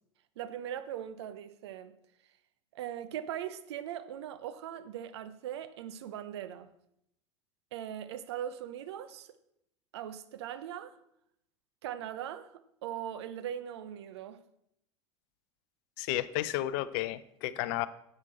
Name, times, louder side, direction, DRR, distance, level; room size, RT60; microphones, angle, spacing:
voice 1, 0.4-2.0 2.7-6.7 7.7-9.3 9.9-10.9 11.8-14.4, right 10 dB, 65° right, 0.7 m, -40 dB
voice 2, 16.0-17.9, left 15 dB, 55° left, 0.5 m, -32 dB
10.5 x 7.6 x 4.3 m
figure-of-eight pair, 75°, 15 cm